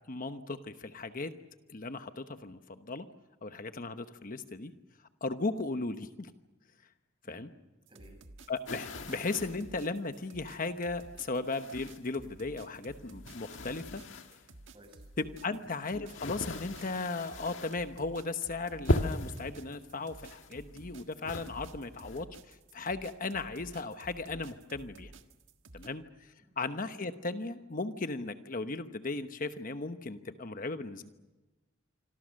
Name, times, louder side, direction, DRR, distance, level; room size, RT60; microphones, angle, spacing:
voice 1, 0.1-1.3 1.7-3.0 3.4-4.7 5.2-6.3 7.3-7.5 8.5-14.0 15.2-25.1 25.7-26.3 26.6-31.1, left 3 dB, 45° left, 9 dB, 1.0 m, -36 dB
voice 2, 7.2-7.6 7.9-8.3 14.7-15.0 25.8-25.9 26.4-26.5, right 1 dB, 30° right, 4 dB, 7.5 m, -58 dB
sound 1, 7.9-25.9, right 2 dB, 75° right, 1.6 m, -53 dB
sound 2, 8.7-9.7 10.4-10.5 11.5-12.3 12.6-14.5 15.2-17.9 18.2-18.5 18.9-19.5 20.1-20.9 21.2-22.2, left 1 dB, 80° left, 1.6 m, -37 dB
26.0 x 26.0 x 6.5 m, 1.1 s
head